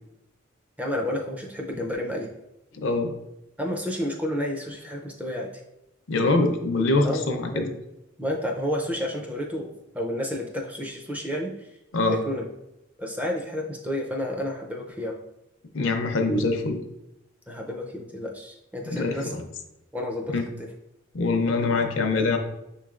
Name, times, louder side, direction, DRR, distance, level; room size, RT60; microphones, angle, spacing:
voice 1, 0.8-2.3 3.6-5.5 7.0-7.7 8.2-11.7 12.1-12.5 13.0-15.2 17.5-19.3 19.9-20.4, left 1 dB, 5° right, 0 dB, 0.5 m, -30 dB
voice 2, 2.7-3.1 6.1-7.7 11.9-12.2 15.7-16.8 18.9-19.4 20.3-20.4 21.1-22.4, left 3 dB, 75° left, 4 dB, 0.6 m, -24 dB
6.5 x 3.1 x 2.4 m, 0.91 s
head